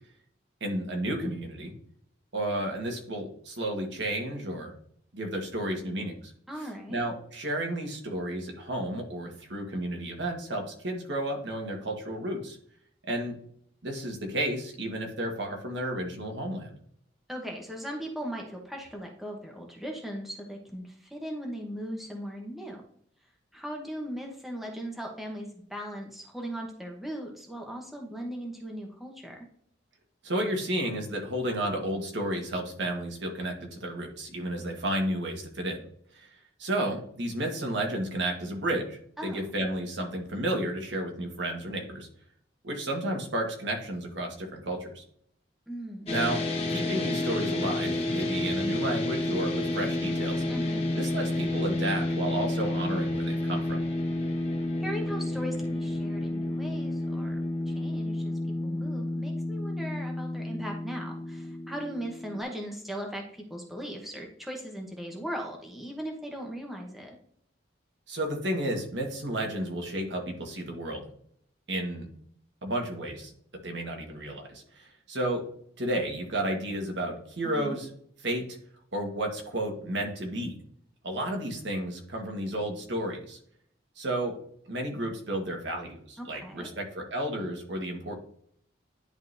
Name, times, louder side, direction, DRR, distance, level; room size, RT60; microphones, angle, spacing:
voice 1, 0.6-1.7 2.3-4.7 5.1-6.3 6.9-12.6 13.1-13.4 13.8-16.7 30.2-35.8 36.1-36.3 36.6-42.1 42.6-45.0 46.1-46.4 46.7-50.4 51.0-53.8 68.1-71.1 71.7-72.1 72.6-73.3 73.6-75.4 75.8-77.9 78.2-78.4 78.9-80.5 81.0-83.4 84.0-84.3 84.7-88.1, right 1 dB, 70° right, 2 dB, 1.5 m, -32 dB
voice 2, 6.5-7.0 17.3-22.8 23.5-29.4 39.2-39.4 45.7-46.1 50.4-50.8 54.8-57.4 57.7-67.2 77.4-77.8 86.2-86.7, equal, ahead, 0 dB, 1.0 m, -38 dB
sound 1, 46.1-62.4, left 1 dB, 30° left, 1.6 m, -30 dB
10.5 x 3.8 x 2.7 m, 0.64 s
head